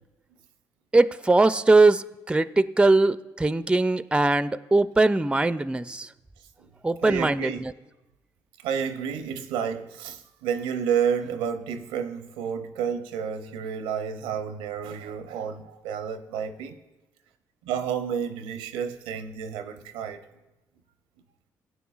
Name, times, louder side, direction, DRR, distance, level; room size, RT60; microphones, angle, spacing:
voice 1, 0.9-6.1 6.8-7.7, right 2 dB, 10° right, 0.4 m, -21 dB
voice 2, 7.0-7.6 8.6-16.7 17.6-20.2, right 7 dB, 90° right, 0.6 m, -30 dB
17.0 x 9.1 x 2.4 m
hypercardioid pair, 50°, 9 cm